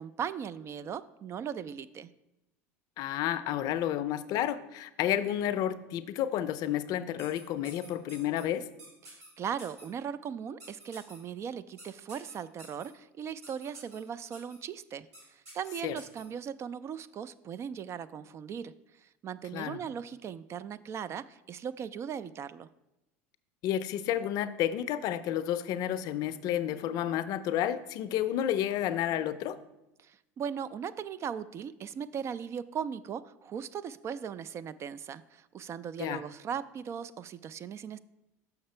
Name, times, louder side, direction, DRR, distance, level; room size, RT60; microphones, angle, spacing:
voice 1, 0.0-2.1 9.0-18.7 19.2-22.7 30.0-38.0, right 8 dB, 35° right, 15 dB, 0.3 m, -38 dB
voice 2, 3.0-8.7 15.8-16.0 19.5-19.8 23.6-29.6 36.0-36.2, left 11 dB, 55° left, 13 dB, 0.5 m, -31 dB
sound 1, 7.2-8.4 8.8-9.3 9.6-9.9 10.6-11.2 11.8-12.9 13.4-14.0 14.3-14.6 15.1-15.2 15.5-16.2, right 1 dB, 85° right, 2.6 m, -50 dB
6.5 x 5.9 x 4.3 m, 0.93 s
hypercardioid pair, 95°, 8 cm